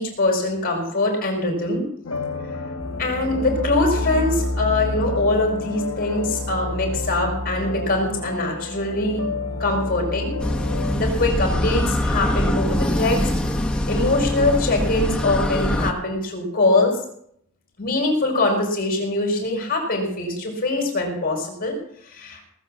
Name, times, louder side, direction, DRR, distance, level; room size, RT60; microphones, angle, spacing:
voice 1, 0.0-1.9 3.0-9.2 9.6-10.3 10.9-13.3 13.9-17.0 17.8-22.5, left 2 dB, 45° left, 1 dB, 4.9 m, -23 dB
sound 1, 2.0-11.0, left 4 dB, 75° left, 1.3 m, -32 dB
sound 2, 2.8-13.0, left 1 dB, 60° right, 1.2 m, -30 dB
sound 3, 10.4-15.9, left 1 dB, 5° left, 1.0 m, -23 dB
19.0 x 7.8 x 7.4 m, 0.70 s
head